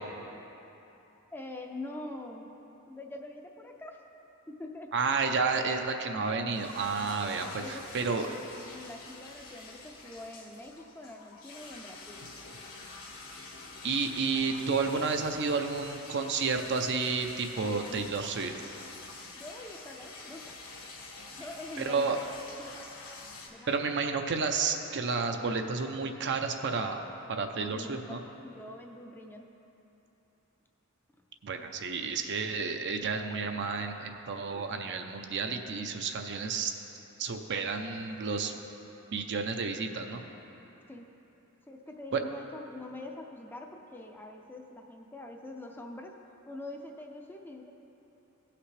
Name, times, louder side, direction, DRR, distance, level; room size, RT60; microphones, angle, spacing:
voice 1, 1.3-2.5 2.9-4.0 4.5-4.9 7.4-8.4 8.7-12.3 17.8-18.3 19.3-20.6 21.4-22.3 22.6-22.9 23.5-23.9 27.6-29.5 34.5-35.1 40.9-41.1 41.7-46.2 46.5-47.7, left 2 dB, 10° left, 2 dB, 0.5 m, -44 dB
voice 2, 4.9-8.3 13.8-18.5 21.8-22.2 23.7-27.0 27.3-28.2 31.4-36.7 37.2-38.5 39.1-40.2 42.1-42.2, right 4 dB, 55° right, 5 dB, 0.6 m, -31 dB
sound 1, 6.5-23.5, left 3 dB, 70° left, 1.6 m, -47 dB
17.0 x 5.8 x 3.3 m, 3.0 s
head